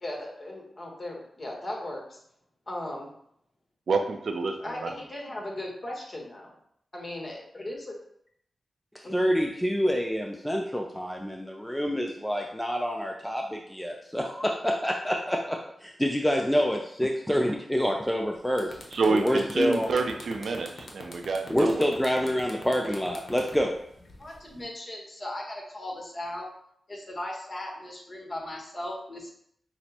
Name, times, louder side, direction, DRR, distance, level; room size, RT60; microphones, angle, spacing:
voice 1, 0.0-2.2 2.7-3.1 4.6-6.5 6.9-8.0 9.0-9.3 24.2-26.5 26.9-29.3, left 1 dB, 40° left, -1 dB, 1.1 m, -37 dB
voice 2, 3.9-4.9 18.9-21.9, right 4 dB, 75° right, 5 dB, 0.4 m, -28 dB
voice 3, 8.9-18.8 19.1-19.9 21.5-23.7, equal, 5° left, 1 dB, 0.4 m, -27 dB
sound 1, 18.1-18.2 18.5-24.6, left 2 dB, 65° left, 0.8 m, -45 dB
6.0 x 2.0 x 2.8 m, 0.70 s
cardioid pair, 50°, 0 cm